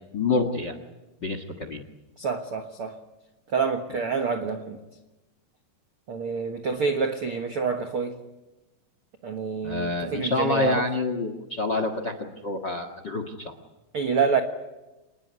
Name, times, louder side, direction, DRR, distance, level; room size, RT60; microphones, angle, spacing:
voice 1, 0.1-0.8 1.2-1.8 9.6-13.5, left 3 dB, 55° left, 10 dB, 1.1 m, -27 dB
voice 2, 2.2-3.0 3.5-4.8 6.1-8.2 9.2-10.8 13.9-14.4, right 5 dB, 85° right, 5 dB, 1.2 m, -27 dB
26.5 x 20.5 x 9.6 m, 1.1 s
omnidirectional pair, 4.9 m